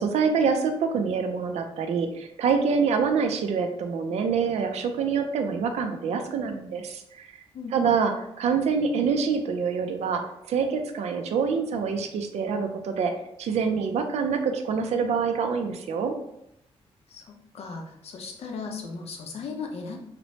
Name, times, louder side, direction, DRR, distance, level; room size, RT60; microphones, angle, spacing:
voice 1, 0.0-7.3 7.7-13.1 13.4-16.2, right 5 dB, 85° right, 5 dB, 0.4 m, -26 dB
voice 2, 7.5-8.0 17.1-20.0, left 4 dB, 65° left, 2 dB, 0.5 m, -37 dB
3.0 x 2.0 x 2.7 m, 0.79 s
wide cardioid pair, 140°, 11 cm